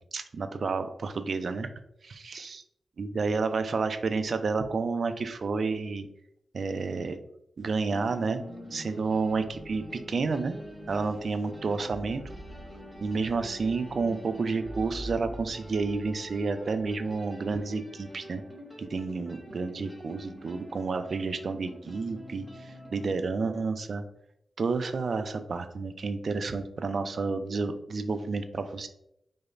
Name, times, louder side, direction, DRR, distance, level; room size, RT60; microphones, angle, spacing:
voice 1, 0.1-1.7 2.0-2.6 3.0-6.1 6.5-7.2 7.6-8.4 8.7-10.6 10.9-12.2 13.0-18.4 18.8-24.0 24.6-28.9, right 4 dB, 65° right, 9 dB, 0.3 m, -30 dB
sound 1, 7.9-23.1, equal, 10° left, 0.9 m, -46 dB
sound 2, 8.3-17.2, right 1 dB, 20° right, 0.6 m, -47 dB
5.0 x 2.0 x 2.4 m, 0.80 s
cardioid pair, 55°, 0 cm